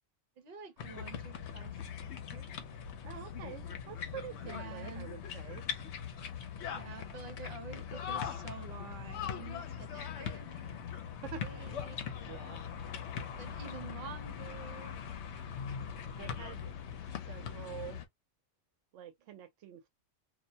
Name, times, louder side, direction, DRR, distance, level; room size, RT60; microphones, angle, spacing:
voice 1, 0.4-2.8 4.4-5.1 6.6-11.1 11.4-12.0 13.2-15.0, right 5 dB, 60° right, 0.9 m, -49 dB
sound 1, 0.8-18.0, left 7 dB, 70° left, 0.8 m, -41 dB
voice 2, 3.0-5.6 11.2-11.7 12.2-12.6 16.2-16.7 17.3-18.0 18.9-19.9, right 9 dB, 85° right, 0.9 m, -47 dB
2.4 x 2.1 x 2.6 m
omnidirectional pair, 1.2 m